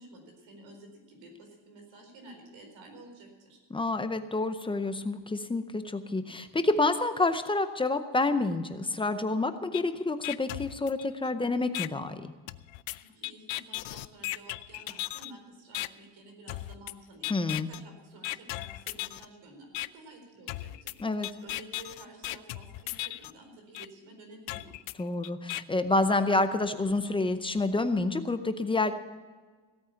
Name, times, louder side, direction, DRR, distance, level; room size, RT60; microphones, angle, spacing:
voice 1, 0.0-3.6 13.0-24.7, right 2 dB, 85° right, 4 dB, 4.4 m, -51 dB
voice 2, 3.7-12.3 17.3-17.7 21.0-21.3 25.0-28.9, left 2 dB, 10° left, 9 dB, 0.6 m, -28 dB
sound 1, 9.7-9.8 10.2-11.3 11.7-11.9 12.5-15.3 15.7-15.9 16.5-16.9 17.2-17.8 18.2-19.3 19.7-19.9 20.5-23.3 23.7-23.9 24.5-25.6, left 19 dB, 80° left, 0.6 m, -36 dB
16.5 x 8.9 x 6.9 m, 1.4 s
cardioid pair, 160°, 44 cm